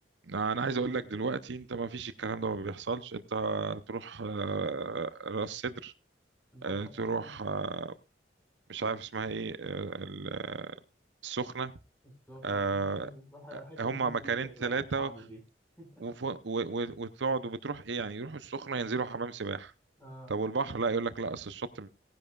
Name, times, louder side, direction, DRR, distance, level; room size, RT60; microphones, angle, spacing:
voice 1, 0.3-5.9 6.6-7.9 8.7-10.8 11.2-11.7 12.4-13.1 13.5-15.1 16.0-19.7 20.3-21.9, right 4 dB, 70° right, 0.7 m, -33 dB
voice 2, 6.5-7.3 12.0-15.4 15.8-16.1 20.0-20.3, equal, 10° left, 5.5 m, -49 dB
17.5 x 10.5 x 2.4 m
head